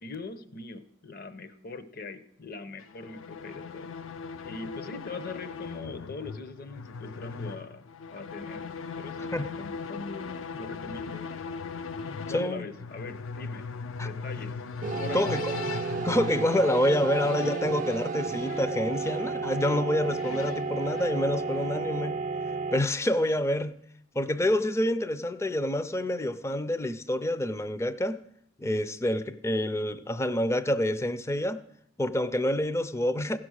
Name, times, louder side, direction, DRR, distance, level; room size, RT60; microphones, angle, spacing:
voice 1, 0.0-3.9 4.4-7.8 8.1-8.7 9.0-11.3 12.0-13.7 14.0-14.6 14.9-15.4, left 3 dB, 50° left, 0.8 m, -41 dB
sound 1, 2.8-21.8, left 5 dB, 70° left, 0.5 m, -40 dB
voice 2, 12.3-12.6 14.0-14.1 15.1-15.8 16.0-22.2 22.7-23.8 24.1-28.2 28.6-31.6 32.0-33.4, left 1 dB, 15° left, 0.5 m, -27 dB
sound 2, 14.8-22.8, right 4 dB, 40° right, 0.4 m, -32 dB
15.5 x 6.1 x 6.3 m
head